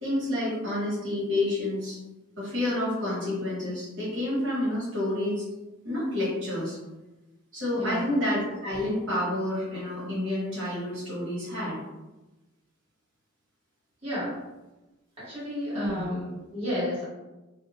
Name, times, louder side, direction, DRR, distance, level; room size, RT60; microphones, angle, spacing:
voice 1, 0.0-2.0 2.4-5.4 5.8-6.8 7.5-11.8 15.7-16.1, left 1 dB, 65° right, -8 dB, 1.1 m, -29 dB
voice 2, 7.7-8.1 14.0-14.3 15.2-17.1, left 1 dB, 25° right, -11 dB, 1.4 m, -32 dB
2.7 x 2.1 x 2.8 m, 1.1 s
head